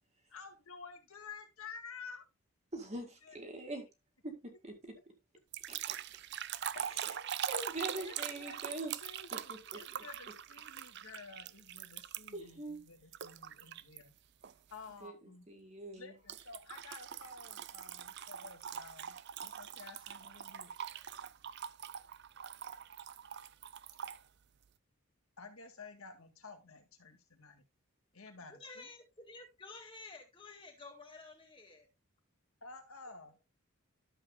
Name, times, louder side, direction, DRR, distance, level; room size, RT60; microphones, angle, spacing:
voice 1, 0.3-2.2 2.9-3.9 6.7-7.1 8.0-14.1 14.7-15.5 16.0-19.2 19.4-20.7 25.4-27.6 28.1-28.9 32.6-33.4, left 4 dB, 80° left, 1.9 m, -52 dB
voice 2, 2.7-3.8 4.2-4.9 5.7-6.0 6.9-7.0 7.5-8.9 9.3-9.8 12.3-12.8 15.0-15.2 15.5-16.1, right 2 dB, 30° right, 1.9 m, -43 dB
sound 1, 5.5-12.5 13.1-14.0 14.4-14.7 16.3-24.2, right 9 dB, 50° right, 0.4 m, -43 dB
voice 3, 28.5-31.9 33.1-33.2, left 3 dB, 25° left, 2.1 m, -52 dB
12.0 x 7.3 x 2.2 m
head